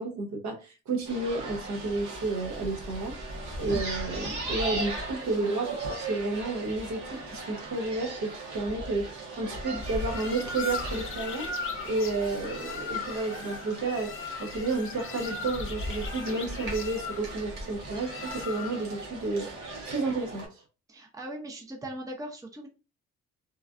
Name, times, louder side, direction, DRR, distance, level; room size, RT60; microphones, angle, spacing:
voice 1, 0.0-3.2 3.6-11.5 11.8-14.1 14.4-19.5 19.8-20.6, right 3 dB, 65° right, 3 dB, 1.0 m, -31 dB
sound 1, 1.0-20.5, right 1 dB, 85° right, 1.2 m, -38 dB
sound 2, 9.7-19.0, left 4 dB, 45° left, 0.6 m, -38 dB
voice 2, 20.9-22.7, right 1 dB, 10° right, 3 dB, 0.6 m, -39 dB
3.2 x 2.4 x 2.4 m, 0.32 s
cardioid pair, 90°, 30 cm